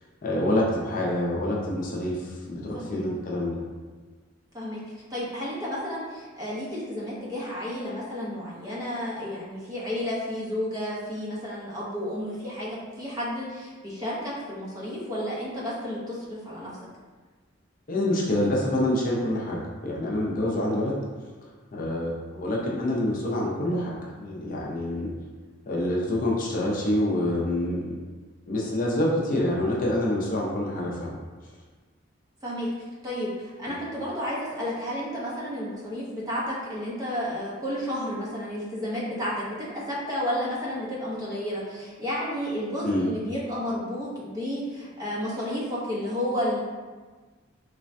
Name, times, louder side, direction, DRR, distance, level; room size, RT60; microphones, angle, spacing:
voice 1, 0.2-3.6 17.9-21.0 21.7-25.1 25.7-27.9 28.5-31.1 33.7-33.8 42.8-43.1, left 1 dB, 45° left, -4 dB, 0.4 m, -26 dB
voice 2, 2.7-3.0 4.5-4.8 5.1-16.7 32.4-32.7 33.0-46.6, equal, 20° right, -7 dB, 0.6 m, -32 dB
3.1 x 2.2 x 2.5 m, 1.4 s
head